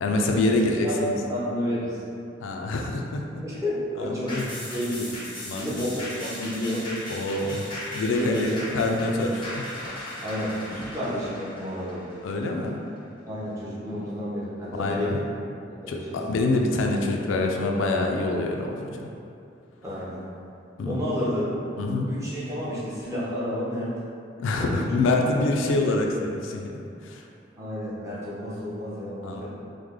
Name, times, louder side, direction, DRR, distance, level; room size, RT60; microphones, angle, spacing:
voice 1, 0.0-1.2 2.4-3.4 4.0-4.4 5.5-5.7 7.1-9.7 9.9-10.1 12.2-12.8 14.7-15.2 15.9-19.0 20.8-21.0 21.8-22.1 24.4-26.7 27.0-27.2 29.2-29.4, left 2 dB, 90° left, 2 dB, 0.3 m, -26 dB
voice 2, 0.8-2.0 3.4-4.4 4.7-5.2 5.6-6.9 8.1-8.6 10.2-12.1 13.3-15.2 15.7-16.2 19.8-20.2 20.8-21.7 22.1-23.9 24.6-25.4 27.6-29.5, equal, 15° right, -9 dB, 0.6 m, -31 dB
sound 1, 4.3-13.0 13.4-13.5, left 1 dB, 25° left, 0.5 m, -37 dB
3.2 x 2.1 x 3.5 m, 2.6 s
head